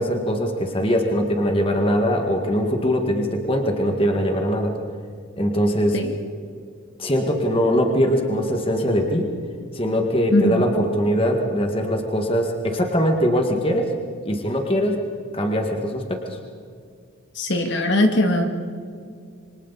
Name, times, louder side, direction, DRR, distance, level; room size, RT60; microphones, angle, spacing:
voice 1, 0.0-4.7 5.4-6.0 7.0-9.3 9.7-13.9 14.2-15.0 15.3-16.2, equal, 25° left, 3 dB, 1.9 m, -21 dB
voice 2, 10.3-10.6 17.4-18.4, left 1 dB, 60° left, 4 dB, 2.2 m, -20 dB
27.5 x 24.5 x 4.2 m, 2.2 s
head